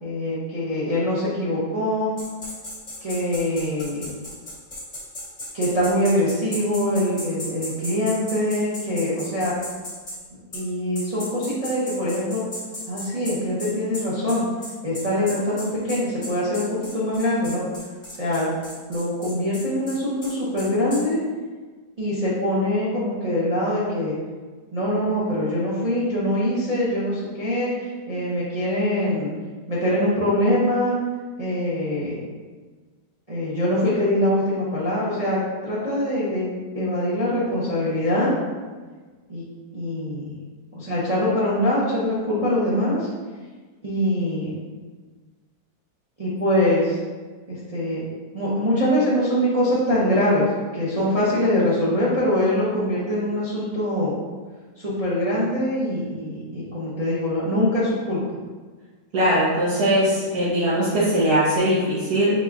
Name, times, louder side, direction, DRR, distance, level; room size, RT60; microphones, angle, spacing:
voice 1, 0.0-2.1 3.0-4.1 5.5-9.6 10.5-12.4 12.9-14.4 14.8-17.6 18.2-18.5 18.9-21.2 22.0-24.1 24.7-29.3 29.7-30.9 31.4-32.2 33.3-38.3 39.3-39.4 39.7-40.4 40.7-43.1 43.8-44.6 46.2-47.0 47.5-48.0 48.3-54.1 54.8-58.2, left 1 dB, 35° right, -11 dB, 0.6 m, -23 dB
sound 1, 2.2-10.2 10.5-10.6 10.9-21.0, left 1 dB, 30° left, 1.4 m, -35 dB
voice 2, 59.1-62.3, equal, 65° right, -12 dB, 1.5 m, -20 dB
4.0 x 2.2 x 3.5 m, 1.4 s
omnidirectional pair, 1.8 m